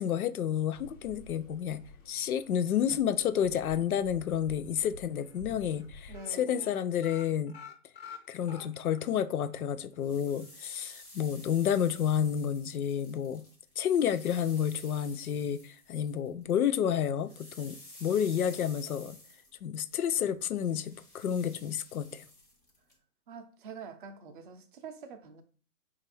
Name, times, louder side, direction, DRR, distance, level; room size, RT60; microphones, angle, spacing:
voice 1, 0.0-7.6 8.3-13.4 13.8-19.2 19.6-22.3, left 9 dB, 75° left, 0.6 m, -30 dB
sound 1, 0.7-6.2, left 3 dB, 60° left, 1.2 m, -51 dB
sound 2, 4.3-4.9 5.2-5.4 5.7-5.9 6.1-9.1 9.5-9.6 9.9-10.0, left 7 dB, 40° left, 0.8 m, -49 dB
voice 2, 6.1-6.8 23.3-25.4, right 5 dB, 35° right, 0.6 m, -46 dB
sound 3, 9.8-16.6 16.9-23.0, left 1 dB, 10° left, 0.6 m, -53 dB
4.1 x 2.6 x 4.1 m
hypercardioid pair, 135°, 43 cm